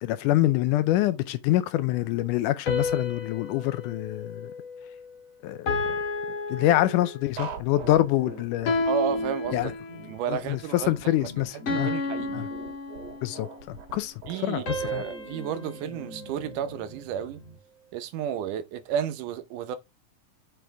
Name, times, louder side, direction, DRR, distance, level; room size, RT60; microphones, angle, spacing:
voice 1, 0.0-4.5 5.4-6.0 6.3-8.8 9.5-9.7 10.3-11.9 12.3-12.5 13.2-14.1 14.4-15.0, left 14 dB, 80° left, 2.1 m, -26 dB
sound 1, 2.7-5.2 5.7-7.4 8.7-10.2 11.7-13.5 14.7-17.0, left 3 dB, 45° left, 2.2 m, -32 dB
sound 2, 7.4-17.6, right 2 dB, 55° right, 2.9 m, -43 dB
voice 2, 8.9-9.7 10.0-11.3 11.7-12.5 14.3-17.4 17.9-19.8, right 9 dB, 75° right, 2.3 m, -32 dB
7.8 x 4.9 x 3.5 m
omnidirectional pair, 3.8 m